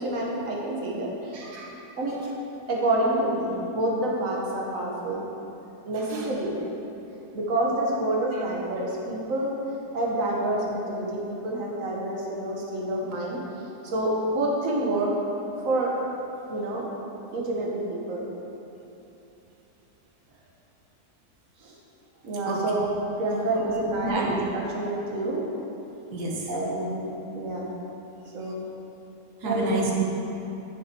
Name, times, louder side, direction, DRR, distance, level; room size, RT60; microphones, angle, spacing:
voice 1, 0.0-1.5 2.0-2.2 2.7-5.2 5.8-6.6 7.3-9.5 9.9-13.4 13.8-15.1 15.6-15.9 16.5-16.8 17.3-18.3 21.6-21.7 22.2-22.9 23.2-25.4 26.5-27.6 28.3-28.5 29.4-29.8, right 1 dB, 55° right, -3 dB, 1.5 m, -28 dB
voice 2, 1.3-1.8 5.9-6.3 8.2-8.4 22.4-22.6 24.0-24.4 26.1-26.5 29.4-30.0, right 3 dB, 80° right, -2 dB, 1.6 m, -30 dB
9.6 x 7.2 x 2.9 m, 3.0 s
omnidirectional pair, 1.7 m